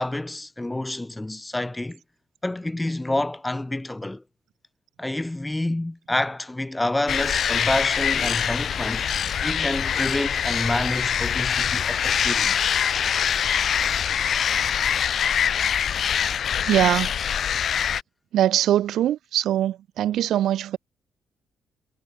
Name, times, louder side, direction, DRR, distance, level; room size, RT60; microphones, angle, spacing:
voice 1, 0.0-2.0 2.4-4.2 5.0-9.1 9.4-12.6, left 1 dB, 10° left, 1.3 m, -28 dB
sound 1, 7.1-18.0, left 8 dB, 55° left, 2.1 m, -24 dB
voice 2, 16.7-17.2 18.3-20.8, right 12 dB, 75° right, 3.7 m, -22 dB
cardioid pair, 90°, 0 cm